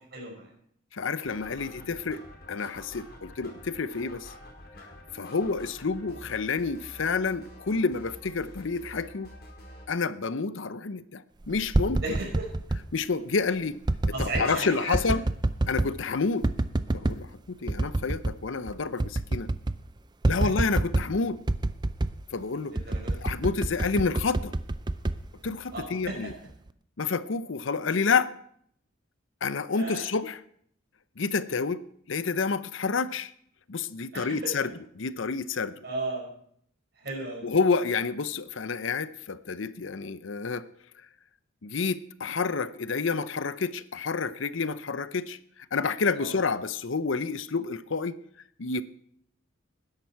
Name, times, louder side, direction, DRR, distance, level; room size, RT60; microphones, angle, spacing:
voice 1, 0.1-0.5 1.6-1.9 12.0-12.5 14.1-15.2 22.7-23.3 25.7-26.3 29.7-30.0 34.1-34.5 35.8-36.3 37.0-37.5 46.1-46.4, right 2 dB, 55° right, -1 dB, 5.8 m, -35 dB
voice 2, 0.9-2.2 2.5-4.3 5.1-9.3 9.9-12.0 12.9-13.8 14.2-15.2 15.7-16.5 16.9-19.5 20.3-21.4 22.3-22.8 23.2-24.5 25.4-26.3 27.0-28.3 29.4-30.4 31.2-31.8 32.1-33.3 33.7-35.8 37.4-40.7 41.6-45.4 45.7-48.2 48.6-48.8, left 4 dB, 75° left, 15 dB, 0.7 m, -29 dB
sound 1, 1.2-9.9, left 1 dB, 50° left, 4.8 m, -48 dB
sound 2, 11.5-12.9 13.9-14.5 14.9-16.0 16.4-17.2 17.7-18.4 18.7-18.8 19.0-19.8 20.2-21.2 21.5-22.2 22.8-25.9 26.3-26.7, right 2 dB, 20° right, 0.4 m, -27 dB
19.5 x 10.5 x 4.6 m, 0.67 s
head